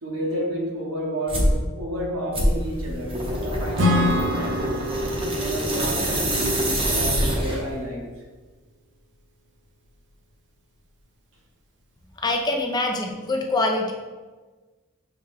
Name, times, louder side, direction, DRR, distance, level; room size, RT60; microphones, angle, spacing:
voice 1, 0.0-4.7 5.3-8.2, right 1 dB, 85° right, -3 dB, 1.1 m, -31 dB
sound 1, 1.3-1.6 2.3-7.8, equal, 25° right, 0.7 m, -25 dB
Acoustic guitar / Strum, 3.8-7.4, left 1 dB, 60° right, 0.7 m, -26 dB
voice 2, 12.2-13.9, left 2 dB, 20° left, 1 dB, 0.4 m, -24 dB
5.9 x 2.2 x 3.3 m, 1.3 s
head